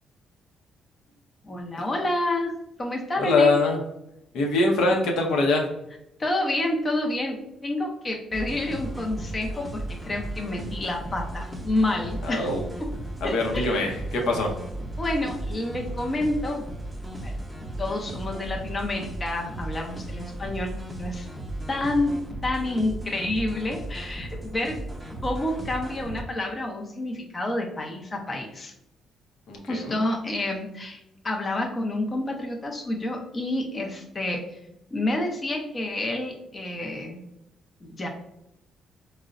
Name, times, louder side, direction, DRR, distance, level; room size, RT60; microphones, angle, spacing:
voice 1, 1.4-3.6 6.2-12.5 12.8-12.9 13.2-13.8 15.0-16.7 17.2-17.3 17.8-21.3 21.7-24.8 25.2-28.7 29.7-31.0 31.2-34.4 34.9-37.2 37.8-38.1, left 1 dB, 30° left, 2 dB, 0.5 m, -29 dB
voice 2, 3.2-3.8 4.3-5.7 12.2-12.7 13.2-14.5 29.5-30.0, left 2 dB, 80° left, 1 dB, 0.6 m, -23 dB
sound 1, 8.3-26.2, right 1 dB, 5° right, 0.7 m, -35 dB
3.7 x 2.0 x 2.4 m, 0.84 s
cardioid pair, 90°, 0 cm